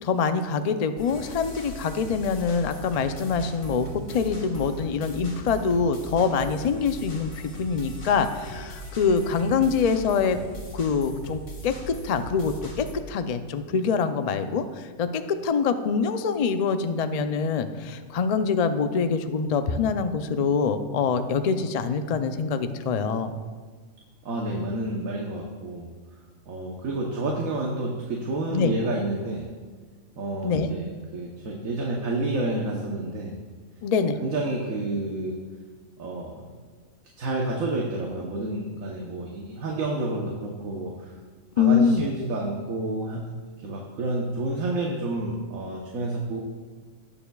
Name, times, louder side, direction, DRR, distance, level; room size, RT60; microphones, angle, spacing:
voice 1, 0.0-10.4 10.7-23.3 28.5-28.7 30.4-30.7 33.8-34.2 41.6-42.1, left 5 dB, 85° left, 9 dB, 0.3 m, -25 dB
sound 1, 1.0-12.9, right 1 dB, 50° left, 2.0 m, -39 dB
voice 2, 24.2-25.9 26.5-29.5 30.2-33.3 34.2-35.4 36.0-36.4 37.2-41.1 41.6-43.2 43.6-46.4, right 2 dB, 80° right, -1 dB, 1.4 m, -29 dB
18.0 x 7.0 x 2.3 m, 1.4 s
omnidirectional pair, 1.4 m